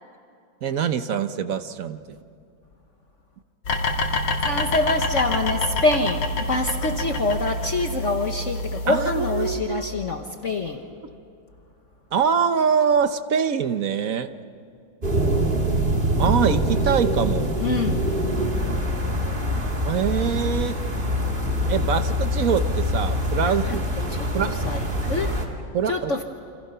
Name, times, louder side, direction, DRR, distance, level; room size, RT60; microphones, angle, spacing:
voice 1, 0.6-2.2 8.9-9.9 12.1-14.3 16.2-17.5 19.8-20.8 21.7-23.8 24.3-24.5 25.7-26.1, right 7 dB, 55° right, 10 dB, 1.1 m, -24 dB
sound 1, 3.6-9.6, left 2 dB, 80° left, 3.0 m, -27 dB
voice 2, 4.4-10.8 17.6-18.1 23.4-23.8 24.1-25.4 25.9-26.2, left 2 dB, 45° left, 5 dB, 1.3 m, -26 dB
sound 2, 15.0-25.4, equal, 25° right, 2.5 m, -24 dB
29.0 x 26.5 x 5.6 m, 2.5 s
omnidirectional pair, 2.1 m